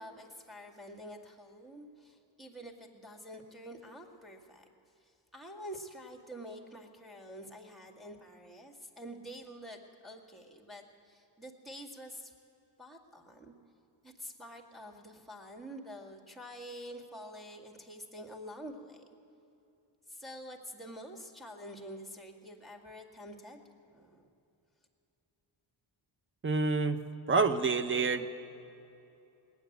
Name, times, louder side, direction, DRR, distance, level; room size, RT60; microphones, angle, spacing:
voice 1, 0.0-4.7 5.0-12.3 12.8-13.5 14.0-19.0 20.1-23.6 23.9-24.3, equal, ahead, 1 dB, 2.0 m, -47 dB
voice 2, 26.4-27.0 27.3-28.3, right 4 dB, 25° right, 10 dB, 0.8 m, -27 dB
19.5 x 9.4 x 8.0 m, 2.7 s
cardioid pair, 75°, 48 cm